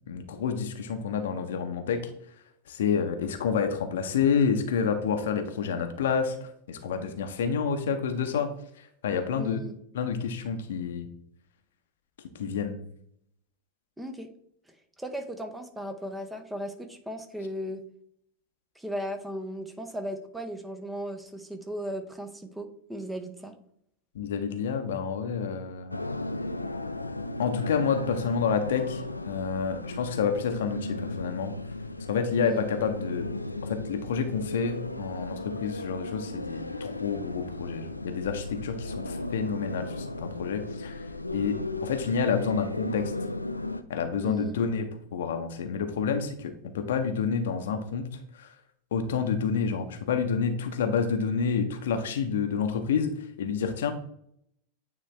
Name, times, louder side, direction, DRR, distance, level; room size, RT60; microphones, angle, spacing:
voice 1, 0.0-2.0 2.7-8.5 8.8-9.6 9.9-11.1 12.3-12.8 24.1-25.9 27.4-31.5 32.1-33.3 33.6-41.1 41.3-43.1 43.9-48.1 48.3-48.5 48.9-53.9, left 6 dB, 60° left, 7 dB, 0.8 m, -29 dB
voice 2, 9.4-9.7 14.0-14.3 15.0-17.8 18.8-23.5 32.4-32.6 44.2-44.6, equal, 5° right, 6 dB, 0.7 m, -36 dB
sound 1, 25.9-43.8, left 2 dB, 85° left, 0.4 m, -35 dB
9.1 x 3.3 x 3.2 m, 0.70 s
figure-of-eight pair, 90°, 0 cm